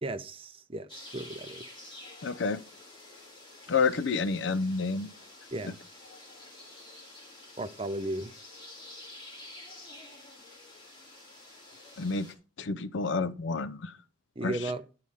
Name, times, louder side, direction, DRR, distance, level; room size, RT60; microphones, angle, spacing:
voice 1, 0.0-1.6 5.5-5.7 7.6-8.3 14.4-14.8, right 1 dB, 30° right, 0.6 m, -35 dB
sound 1, 0.9-12.3, left 2 dB, 25° left, 2.4 m, -49 dB
voice 2, 2.2-2.6 3.7-5.1 5.6-5.7 12.0-12.3 12.6-13.9 14.4-14.6, left 4 dB, 65° left, 0.5 m, -29 dB
10.5 x 4.8 x 5.6 m
head